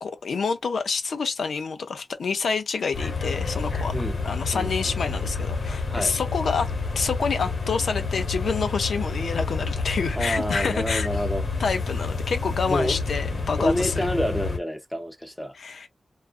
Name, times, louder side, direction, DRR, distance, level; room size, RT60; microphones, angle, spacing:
voice 1, 0.0-3.9 4.2-6.7 7.0-11.1 11.6-13.9 15.6-15.9, left 5 dB, 85° left, 0.5 m, -27 dB
sound 1, 2.9-14.6, left 4 dB, 60° left, 1.1 m, -29 dB
voice 2, 4.5-4.9 5.9-6.2 10.2-11.5 12.7-13.0 13.6-15.6, equal, 5° left, 0.6 m, -28 dB
2.4 x 2.3 x 2.4 m
wide cardioid pair, 75°, 0 cm